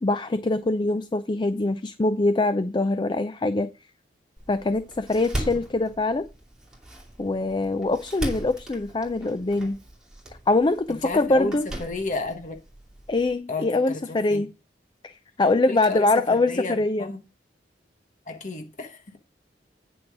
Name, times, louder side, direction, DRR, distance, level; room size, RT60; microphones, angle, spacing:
voice 1, 0.0-3.7 4.5-6.3 7.2-9.8 10.5-11.7 13.1-14.5 15.0-17.1, left 2 dB, 25° left, 0.4 m, -23 dB
Door, 4.4-13.3, right 1 dB, 5° right, 2.6 m, -38 dB
voice 2, 11.0-11.5 11.8-12.6 13.5-14.4 15.7-17.2 18.3-19.2, left 2 dB, 45° left, 1.3 m, -32 dB
9.2 x 5.9 x 4.8 m
head